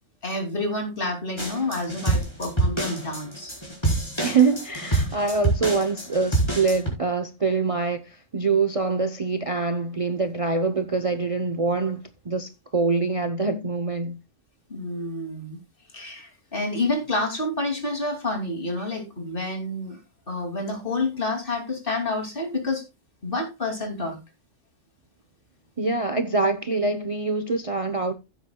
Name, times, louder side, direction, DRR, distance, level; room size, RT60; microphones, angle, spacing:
voice 1, 0.2-3.5 14.7-15.6 15.9-20.0 20.3-22.8 23.2-24.2, left 2 dB, 45° left, 2.9 m, -29 dB
sound 1, 1.4-6.9, right 2 dB, 20° left, 4.3 m, -26 dB
voice 2, 4.2-14.2 25.8-28.1, right 4 dB, 30° right, 0.7 m, -24 dB
15.5 x 8.1 x 2.3 m
omnidirectional pair, 1.3 m